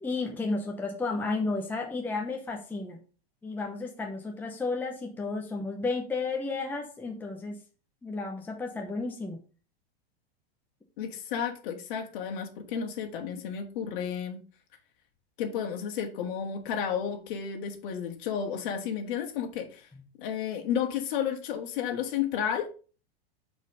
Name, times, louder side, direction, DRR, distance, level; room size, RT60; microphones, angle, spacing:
voice 1, 0.0-3.0 3.4-7.6 8.0-9.4 19.9-20.0, left 3 dB, 5° left, 2 dB, 0.8 m, -32 dB
voice 2, 11.0-14.4 15.4-19.9 20.2-22.7, left 8 dB, 60° left, 4 dB, 1.7 m, -32 dB
5.7 x 4.3 x 5.4 m, 0.36 s
supercardioid pair, 145°, 30 cm